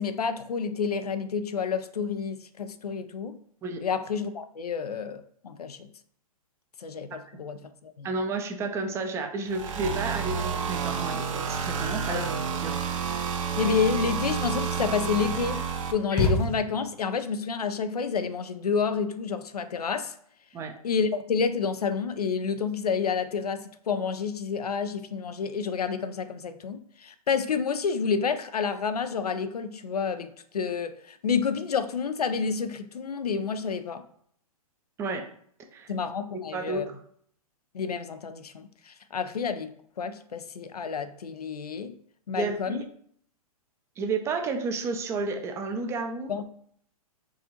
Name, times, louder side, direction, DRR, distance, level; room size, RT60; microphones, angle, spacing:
voice 1, 0.0-3.4 3.8-5.9 6.8-8.1 12.1-12.2 13.5-15.6 15.9-20.1 20.8-34.0 35.9-36.8 37.7-41.9 42.3-42.8 46.3-46.4, left 6 dB, 90° left, 10 dB, 0.5 m, -29 dB
voice 2, 8.0-12.8 20.5-20.7 35.0-35.2 35.7-35.9 36.5-37.0 42.3-42.8 44.0-46.3, right 3 dB, 15° right, 5 dB, 0.4 m, -31 dB
sound 1, 9.5-15.9, right 6 dB, 60° right, 0.6 m, -30 dB
sound 2, 16.1-17.1, left 1 dB, 10° left, 0.8 m, -27 dB
4.7 x 2.5 x 2.8 m, 0.62 s
hypercardioid pair, 125°, 19 cm